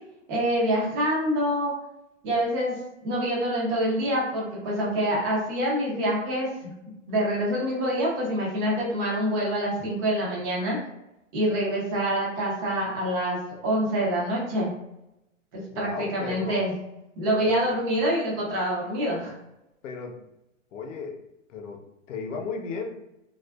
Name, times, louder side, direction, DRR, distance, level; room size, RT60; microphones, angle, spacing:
voice 1, 0.3-1.7 2.2-2.8 3.0-6.7 7.1-10.8 11.3-14.7 15.5-16.8 17.2-19.4, equal, 20° right, -4 dB, 0.4 m, -26 dB
voice 2, 15.7-16.7 17.4-17.6 19.8-20.2 20.7-21.2 21.5-22.9, left 4 dB, 70° left, 3 dB, 0.6 m, -35 dB
2.4 x 2.3 x 2.2 m, 0.87 s
hypercardioid pair, 145°, 40 cm